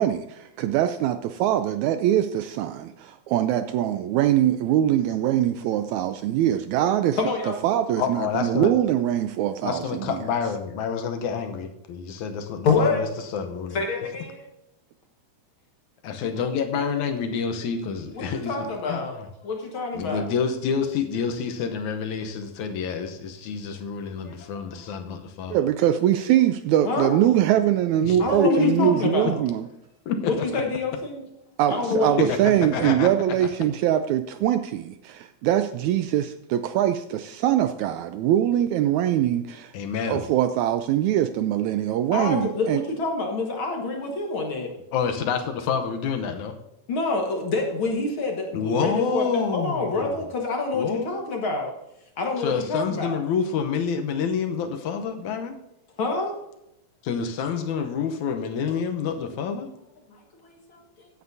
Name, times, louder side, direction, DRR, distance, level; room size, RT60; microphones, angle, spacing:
voice 1, 0.0-7.2 7.6-10.2 25.5-29.7 31.6-39.7 40.1-42.8, right 11 dB, 80° right, 10 dB, 1.7 m, -23 dB
voice 2, 7.2-7.6 12.6-13.0 13.7-14.4 18.1-19.2 19.4-20.2 24.2-24.4 24.7-24.8 26.8-27.3 28.2-29.4 30.3-31.3 31.7-32.8 42.1-44.7 46.9-51.7 52.2-53.2 56.0-56.4 60.1-61.1, left 3 dB, 50° left, 1 dB, 1.8 m, -27 dB
voice 3, 8.0-8.7 9.6-13.1 13.3-13.8 16.0-19.3 19.9-25.6 28.0-29.1 30.1-30.6 32.2-33.1 39.7-40.2 44.9-46.6 48.5-50.2 50.7-51.2 52.4-55.6 57.0-59.7, left 6 dB, 75° left, 7 dB, 2.1 m, -28 dB
15.5 x 9.4 x 2.7 m, 0.86 s
omnidirectional pair, 3.7 m